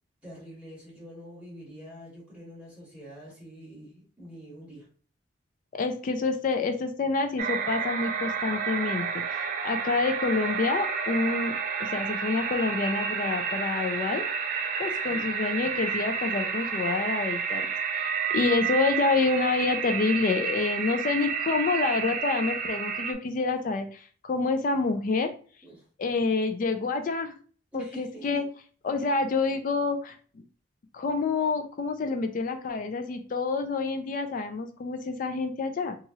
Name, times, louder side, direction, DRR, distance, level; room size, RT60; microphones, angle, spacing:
voice 1, 0.2-4.9 15.1-15.3 25.6-25.8 27.7-28.4, right 1 dB, 10° right, -6 dB, 1.0 m, -46 dB
voice 2, 5.7-14.2 14.8-17.7 17.9-25.3 26.0-27.3 27.7-28.4 28.8-30.1 30.9-36.0, left 4 dB, 45° left, 6 dB, 0.3 m, -28 dB
sound 1, 7.4-23.1, right 6 dB, 45° right, 0.3 m, -30 dB
3.0 x 2.4 x 2.7 m, 0.41 s
head